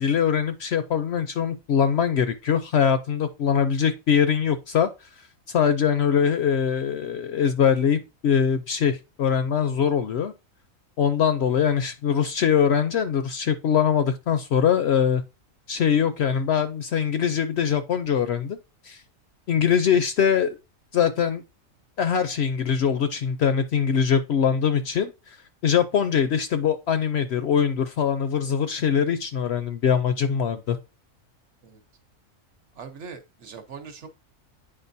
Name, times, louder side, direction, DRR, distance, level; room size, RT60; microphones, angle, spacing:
voice 1, 0.0-4.9 5.5-10.3 11.0-15.2 15.7-18.6 18.9-19.0 19.5-20.6 20.9-21.4 22.0-25.1 25.6-30.8, left 7 dB, 60° left, 0.7 m, -22 dB
voice 2, 32.7-34.1, right 5 dB, 60° right, 1.2 m, -41 dB
8.8 x 4.9 x 2.6 m
omnidirectional pair, 1.4 m